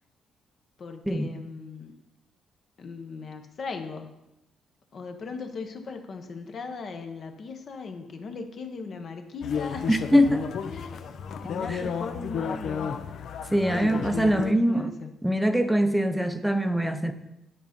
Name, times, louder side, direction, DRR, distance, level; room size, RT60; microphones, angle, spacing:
voice 1, 0.8-1.9 2.8-4.2 4.9-9.9 10.7-10.9 11.4-13.0 13.7-15.1, left 4 dB, 50° left, 6 dB, 1.0 m, -38 dB
sound 1, 9.4-14.5, left 6 dB, 70° left, 0.5 m, -32 dB
voice 2, 9.9-10.5 13.5-14.9 15.2-17.1, equal, 5° right, 8 dB, 0.7 m, -23 dB
9.9 x 4.0 x 5.2 m, 0.91 s
cardioid pair, 90°, 0 cm